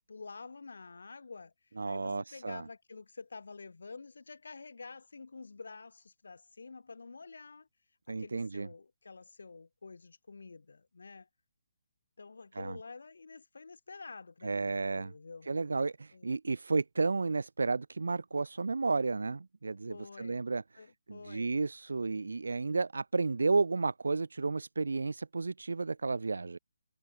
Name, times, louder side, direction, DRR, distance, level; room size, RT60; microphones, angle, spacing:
voice 1, 0.0-7.7 8.1-11.3 12.2-15.5 16.1-16.3 19.9-20.5 20.7-21.6, left 4 dB, 80° left, 7.6 m, -49 dB
voice 2, 1.8-2.6 8.1-8.7 12.5-12.8 14.4-15.1 15.5-26.6, right 3 dB, 85° right, 2.5 m, -32 dB
hypercardioid pair, 165°, 0 cm